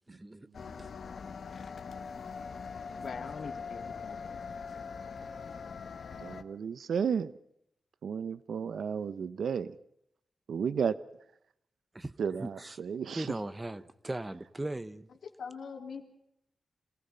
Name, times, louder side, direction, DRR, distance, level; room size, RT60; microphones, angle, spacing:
voice 1, 0.1-0.5 0.8-0.9 11.9-12.1 12.4-12.8 13.2-15.1, right 2 dB, 15° right, 13 dB, 0.9 m, -38 dB
sound 1, 0.5-6.4, left 5 dB, 65° left, 1.0 m, -42 dB
voice 2, 3.0-4.4 15.4-16.0, left 5 dB, 85° left, 3 dB, 2.9 m, -42 dB
voice 3, 6.2-7.3 8.0-9.8 10.5-11.0 12.2-13.3, right 7 dB, 85° right, 15 dB, 0.7 m, -33 dB
27.0 x 18.0 x 5.6 m, 0.76 s
wide cardioid pair, 140°, 0 cm